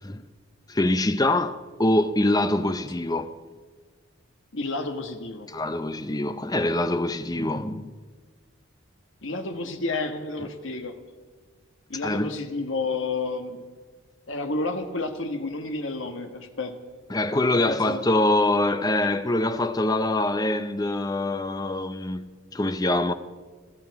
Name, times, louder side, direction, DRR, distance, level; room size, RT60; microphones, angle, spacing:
voice 1, 0.7-3.4 5.5-7.9 12.0-12.3 17.1-23.1, left 1 dB, 15° left, 0.6 m, -24 dB
voice 2, 4.5-5.5 9.2-10.9 11.9-13.6 14.3-16.8 17.5-18.0, left 3 dB, 60° left, 1.3 m, -30 dB
21.5 x 13.5 x 4.7 m
head